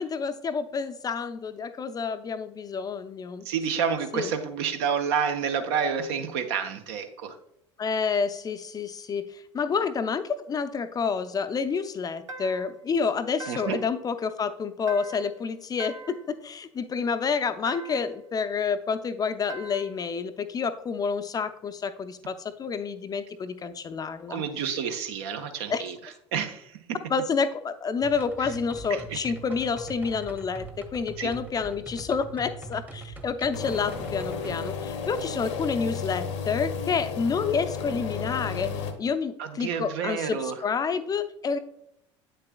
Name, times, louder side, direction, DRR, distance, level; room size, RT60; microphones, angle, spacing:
voice 1, 0.0-3.5 4.1-4.3 7.8-24.4 25.7-25.8 27.1-38.7 39.0-41.6, left 5 dB, 25° left, 11 dB, 0.5 m, -29 dB
voice 2, 3.4-7.4 13.5-13.8 24.3-26.0 26.3-26.8 28.9-29.2 31.2-31.3 39.4-40.6, right 7 dB, 60° right, 7 dB, 0.8 m, -29 dB
sound 1, 12.3-12.8 13.4-13.9 14.9-15.4 15.8-16.3 17.7-18.2 19.5-20.0, right 2 dB, 85° right, 0.4 m, -42 dB
sound 2, 28.0-34.5, right 2 dB, 10° right, 0.9 m, -42 dB
sound 3, 33.5-38.9, left 5 dB, 70° left, 0.8 m, -33 dB
8.2 x 6.5 x 2.2 m, 0.78 s
figure-of-eight pair, 70°, 16 cm